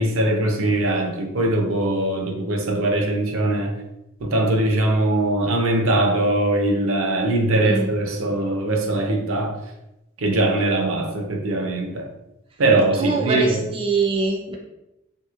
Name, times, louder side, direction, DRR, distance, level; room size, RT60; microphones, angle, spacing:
voice 1, 0.0-3.7 4.2-9.6 10.2-12.1 12.6-13.6, right 2 dB, 70° right, 3 dB, 0.6 m, -21 dB
voice 2, 13.0-14.6, right 3 dB, 25° right, -1 dB, 0.4 m, -23 dB
3.4 x 2.9 x 2.4 m, 0.90 s
head